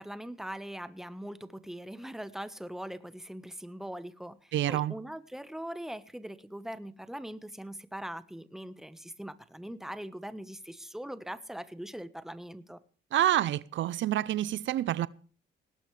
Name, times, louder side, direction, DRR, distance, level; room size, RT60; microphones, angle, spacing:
voice 1, 0.0-12.8, right 1 dB, ahead, 1.3 m, -41 dB
voice 2, 4.5-5.0 13.1-15.1, right 13 dB, 75° right, 0.7 m, -28 dB
19.5 x 17.5 x 3.3 m
cardioid pair, 90°, 20 cm